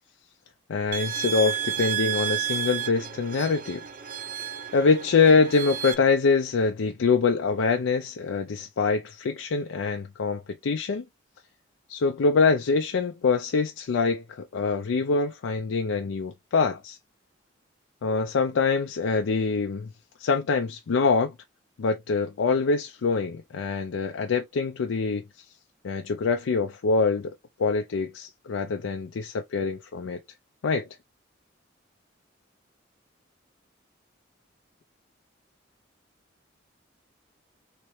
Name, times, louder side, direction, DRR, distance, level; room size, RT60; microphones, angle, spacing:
voice 1, 0.7-3.8 4.7-11.0 11.9-17.0 18.0-19.9 20.2-21.3 21.8-25.2 25.8-27.3 27.6-30.2 30.6-30.9, left 4 dB, 85° left, 0.4 m, -24 dB
sound 1, 0.9-5.9, right 9 dB, 45° right, 0.5 m, -31 dB
3.3 x 3.0 x 3.1 m
head